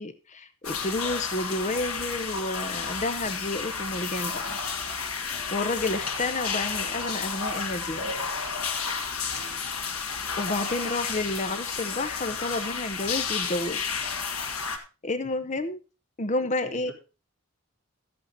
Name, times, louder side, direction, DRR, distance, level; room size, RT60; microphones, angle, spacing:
voice 1, 0.0-4.6 5.1-8.1 9.4-9.6 10.4-13.9 14.6-14.7 15.0-15.8 16.2-16.9, left 2 dB, 35° left, 10 dB, 0.7 m, -31 dB
sound 1, 0.6-14.8, left 5 dB, 85° left, 2.1 m, -31 dB
voice 2, 9.2-9.6 15.2-15.3 16.4-16.9, right 1 dB, 50° right, -1 dB, 3.6 m, -47 dB
13.0 x 8.6 x 4.1 m, 0.31 s
head